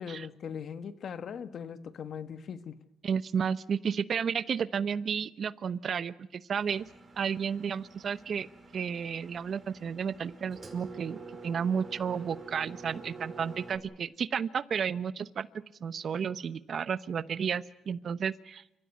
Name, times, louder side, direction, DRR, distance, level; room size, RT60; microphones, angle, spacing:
voice 1, 0.0-2.8, left 7 dB, 60° left, 12 dB, 1.4 m, -40 dB
voice 2, 3.0-6.9 7.2-8.5 8.7-11.2 11.4-15.5 15.8-18.6, right 7 dB, 55° right, 17 dB, 0.8 m, -32 dB
Engine, 6.6-13.8, right 4 dB, 30° right, 5.3 m, -48 dB
29.0 x 15.5 x 9.5 m, 0.82 s
cardioid pair, 90°, 0 cm